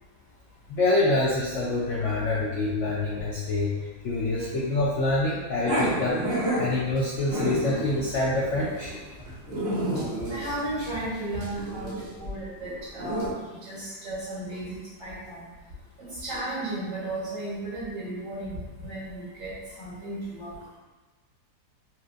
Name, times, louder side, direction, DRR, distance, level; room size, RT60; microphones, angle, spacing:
voice 1, 0.7-6.2 6.6-8.9, left 2 dB, 85° left, -4 dB, 0.6 m, -26 dB
Growling, 5.6-13.3, right 1 dB, 50° right, 0.8 m, -31 dB
voice 2, 10.3-11.9 12.2-13.4 13.7-15.4 16.0-20.5, right 1 dB, 70° right, -9 dB, 2.1 m, -34 dB
4.3 x 2.4 x 2.5 m, 1.2 s
omnidirectional pair, 1.8 m